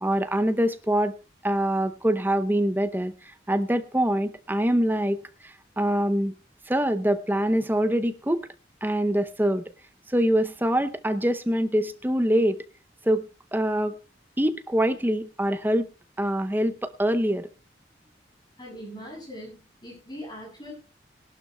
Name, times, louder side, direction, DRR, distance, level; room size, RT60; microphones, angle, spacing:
voice 1, 0.0-1.1 1.4-5.2 5.4-6.3 6.7-8.5 8.8-9.6 10.1-12.6 13.0-14.0 14.4-15.9 16.2-17.5, equal, 10° right, 0.7 m, -24 dB
voice 2, 18.6-20.7, equal, 25° left, 7.7 m, -41 dB
21.5 x 12.0 x 2.3 m
head